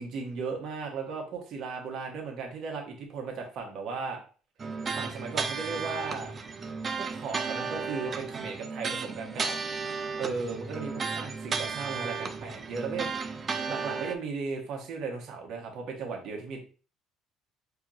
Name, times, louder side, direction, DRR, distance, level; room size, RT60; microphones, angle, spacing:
voice 1, 0.0-4.2 4.9-6.3 6.9-9.6 10.1-16.6, right 4 dB, 60° right, 1 dB, 1.1 m, -36 dB
sound 1, 4.6-14.2, right 4 dB, 35° right, 0.4 m, -34 dB
4.5 x 2.8 x 2.6 m, 0.38 s
cardioid pair, 105°, 0 cm